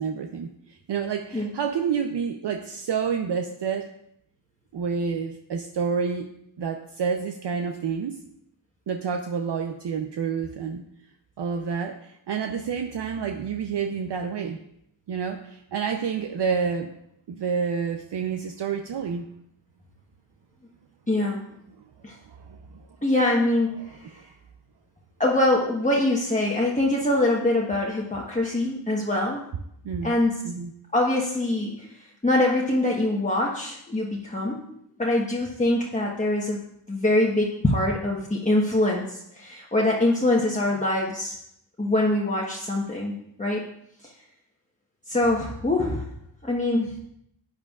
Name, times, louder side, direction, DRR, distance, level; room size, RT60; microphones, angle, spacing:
voice 1, 0.0-3.9 4.7-6.3 6.6-8.2 8.9-10.8 11.4-14.6 15.1-16.9 17.3-19.3 22.3-22.8 23.8-24.2 29.8-30.1 30.4-30.7, right 6 dB, 65° right, 5 dB, 0.7 m, -29 dB
voice 2, 21.1-21.4 22.0-22.1 23.0-23.7 25.2-29.4 30.0-30.4 30.9-31.9 32.2-34.6 35.0-36.6 36.9-41.3 41.8-43.6 44.0-44.1 45.1-46.1 46.4-47.0, left 1 dB, 15° left, -3 dB, 1.2 m, -24 dB
13.5 x 8.9 x 2.4 m, 0.75 s
cardioid pair, 75°, 45 cm